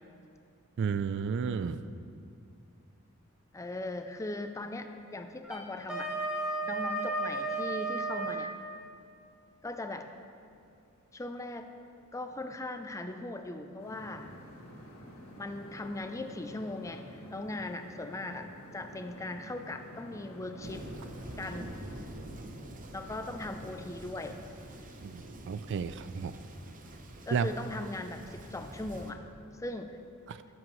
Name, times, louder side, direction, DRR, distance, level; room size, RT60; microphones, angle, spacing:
voice 1, 0.8-1.8 25.0-26.3 27.3-27.5 30.3-30.4, right 6 dB, 55° right, 13 dB, 0.3 m, -32 dB
voice 2, 3.5-6.1 6.6-8.5 9.6-10.1 11.1-11.7 12.1-14.3 15.4-20.9 21.4-21.8 22.9-24.4 27.3-29.2 29.6-30.0, left 2 dB, 15° left, 7 dB, 0.4 m, -39 dB
Wind instrument woodwind instrument, 5.4-8.5, right 2 dB, 5° right, 1.1 m, -33 dB
sound 1, 13.8-22.0, left 1 dB, 70° left, 1.7 m, -50 dB
Thunder, 20.6-29.1, right 1 dB, 40° right, 0.7 m, -46 dB
16.0 x 7.7 x 3.1 m, 2.5 s
head